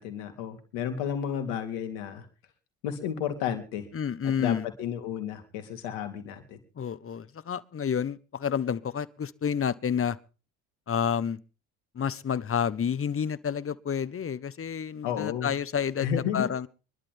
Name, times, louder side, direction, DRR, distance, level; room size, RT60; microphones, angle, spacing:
voice 1, 0.0-2.3 2.8-3.9 4.4-6.6 15.0-15.5 16.0-16.5, left 8 dB, 80° left, 3.6 m, -32 dB
voice 2, 3.9-4.7 6.8-10.2 10.9-11.4 11.9-16.7, left 7 dB, 35° left, 1.2 m, -29 dB
25.0 x 12.0 x 3.6 m
hypercardioid pair, 70°, 39 cm